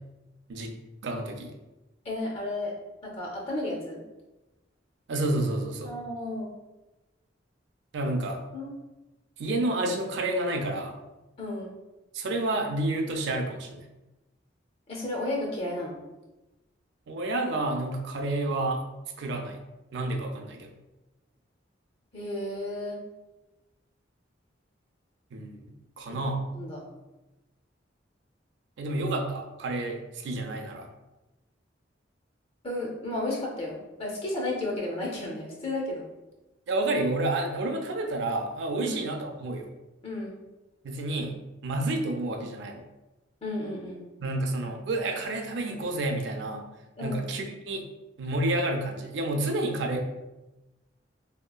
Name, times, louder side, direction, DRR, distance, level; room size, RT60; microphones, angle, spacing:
voice 1, 1.0-1.5 5.1-5.9 7.9-8.4 9.4-11.0 12.1-13.9 17.1-18.8 19.2-19.6 19.9-20.7 25.3-25.6 26.0-26.4 28.8-30.9 36.7-39.7 40.8-41.4 41.6-42.8 44.2-46.7 47.0-47.9 48.2-50.0, right 2 dB, 65° right, 3 dB, 0.4 m, -29 dB
voice 2, 2.0-2.7 3.0-4.0 5.8-6.5 8.5-8.8 11.4-11.7 14.9-16.0 22.1-23.0 26.5-26.8 32.6-36.0 38.8-39.0 40.0-40.4 43.4-44.0 47.0-47.2, left 1 dB, 35° left, -2 dB, 0.5 m, -33 dB
2.8 x 2.3 x 2.2 m, 1.0 s
head